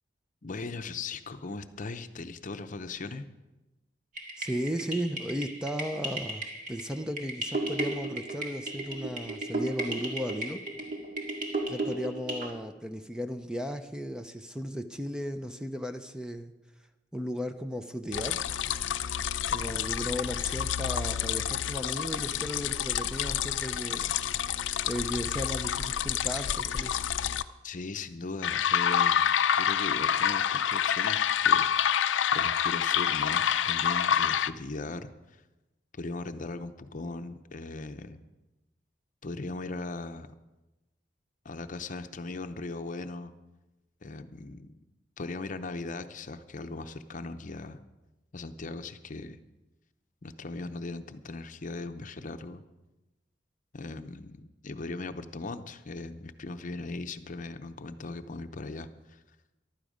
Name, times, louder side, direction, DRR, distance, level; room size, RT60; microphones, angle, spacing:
voice 1, 0.4-3.2 27.6-29.3 29.5-31.7 32.3-35.1 36.0-38.2 39.2-40.3 41.4-43.3 44.0-44.7 45.2-47.8 48.3-49.4 50.2-52.6 53.7-59.2, left 3 dB, 45° left, 9 dB, 0.7 m, -38 dB
sound 1, 4.2-12.5, right 2 dB, 50° right, 1.9 m, -35 dB
voice 2, 4.4-10.6 11.7-16.5 17.1-18.4 19.5-24.1 24.9-27.0, equal, 5° right, 8 dB, 0.5 m, -35 dB
sound 2, 18.1-27.4 28.4-34.5, left 9 dB, 85° left, 0.5 m, -28 dB
14.5 x 12.0 x 5.0 m, 1.0 s
head